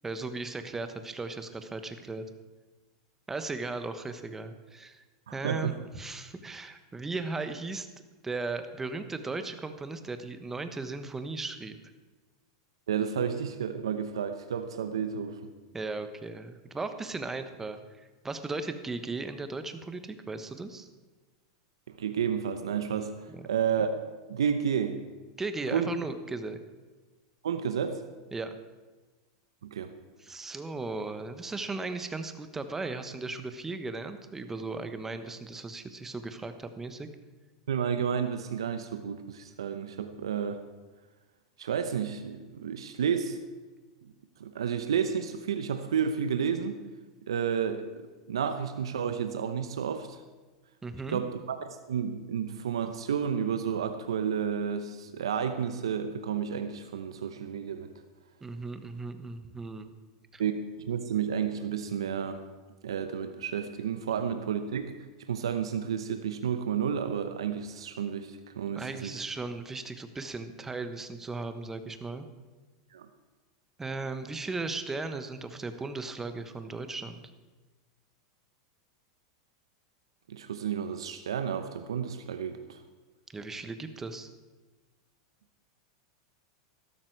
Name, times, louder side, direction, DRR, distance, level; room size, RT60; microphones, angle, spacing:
voice 1, 0.0-2.3 3.3-5.0 5.3-7.9 8.2-11.8 15.7-20.9 23.3-23.5 25.4-26.6 28.3-28.5 30.2-37.1 50.8-51.2 58.4-60.0 60.3-60.4 68.7-72.3 73.8-77.2 83.3-84.3, right 3 dB, 15° right, 9 dB, 1.2 m, -37 dB
voice 2, 5.3-5.7 12.9-15.5 22.0-23.1 23.4-23.9 24.3-25.0 25.7-25.9 27.4-28.0 29.6-29.9 37.7-40.6 41.6-43.4 44.4-46.8 47.3-50.2 51.1-57.9 60.4-60.5 60.8-62.4 62.8-64.9 65.2-69.2 72.9-73.1 80.3-82.8, right 7 dB, 90° right, 8 dB, 0.9 m, -31 dB
13.5 x 12.5 x 4.7 m, 1.3 s
hypercardioid pair, 110°, 3 cm